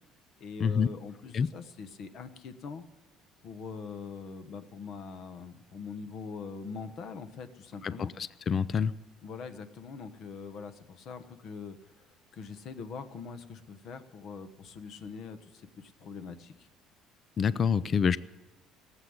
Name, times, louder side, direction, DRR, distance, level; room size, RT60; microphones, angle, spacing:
voice 1, 0.4-2.8 3.4-8.1 9.2-16.7, left 5 dB, 45° left, 1.1 m, -43 dB
voice 2, 8.5-8.9 17.4-18.2, left 6 dB, 30° left, 0.4 m, -26 dB
18.5 x 8.0 x 9.6 m
cardioid pair, 160°, 0 cm